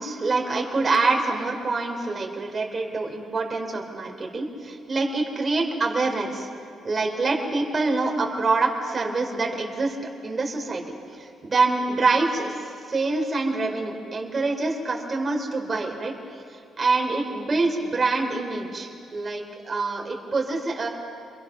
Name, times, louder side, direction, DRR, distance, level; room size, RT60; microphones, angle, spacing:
voice 1, 0.0-6.5 6.8-10.8 11.1-20.9, right 3 dB, 35° right, 1 dB, 3.6 m, -26 dB
27.5 x 23.0 x 6.0 m, 2.4 s
cardioid pair, 90°, 0 cm